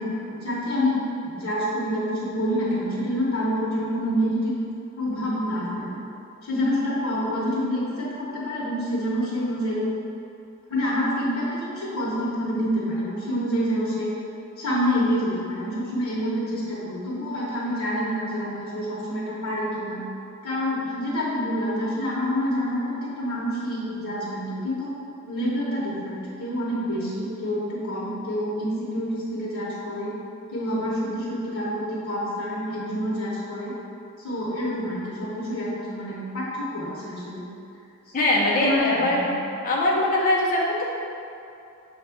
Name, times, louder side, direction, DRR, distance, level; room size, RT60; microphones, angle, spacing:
voice 1, 0.0-4.5 4.9-6.0 6.4-9.9 10.7-14.1 14.6-20.0 20.4-24.9 25.3-30.2 30.5-33.7 34.2-37.5 38.6-39.3, equal, 80° left, -9 dB, 1.0 m, -27 dB
voice 2, 38.1-39.2 39.6-40.8, left 1 dB, 40° left, -4 dB, 0.5 m, -21 dB
5.9 x 2.6 x 3.4 m, 2.6 s
head